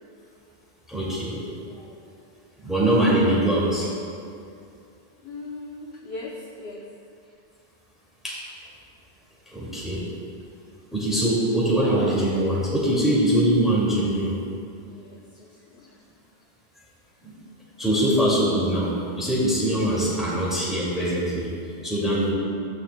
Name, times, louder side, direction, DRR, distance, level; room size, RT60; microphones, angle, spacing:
voice 1, 0.9-1.6 2.6-3.9 8.2-8.4 9.5-10.0 10.9-14.4 17.2-17.3 17.8-21.5 21.8-22.3, right 1 dB, ahead, -7 dB, 2.2 m, -22 dB
voice 2, 5.2-6.8 14.9-15.8, left 2 dB, 65° left, -2 dB, 1.1 m, -39 dB
15.0 x 9.5 x 2.2 m, 2.5 s
omnidirectional pair, 1.1 m